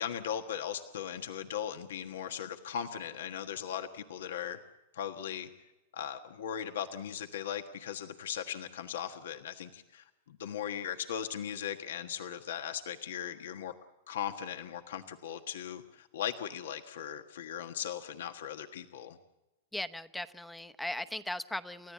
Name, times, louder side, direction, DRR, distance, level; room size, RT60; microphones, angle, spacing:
voice 1, 0.0-4.6 4.9-5.5 5.9-13.7 14.1-19.2, left 9 dB, 80° left, 6 dB, 1.4 m, -38 dB
voice 2, 19.7-21.9, left 1 dB, 5° left, 11 dB, 0.9 m, -38 dB
30.0 x 14.5 x 8.5 m, 1.0 s
hypercardioid pair, 140°, 0 cm